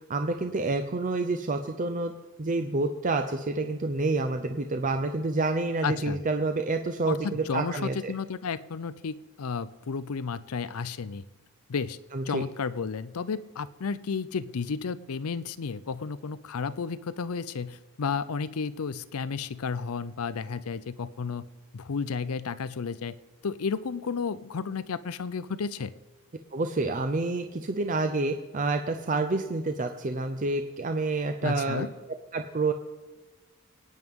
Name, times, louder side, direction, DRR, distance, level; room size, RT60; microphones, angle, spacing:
voice 1, 0.1-2.1 2.4-8.1 12.1-12.4 26.5-31.9 32.3-32.7, right 3 dB, 35° right, 6 dB, 0.5 m, -28 dB
voice 2, 5.8-6.2 7.1-11.2 11.7-21.4 21.7-23.2 23.4-25.9 31.4-31.9, left 5 dB, 80° left, 16 dB, 0.5 m, -32 dB
24.0 x 9.3 x 3.7 m, 1.2 s
head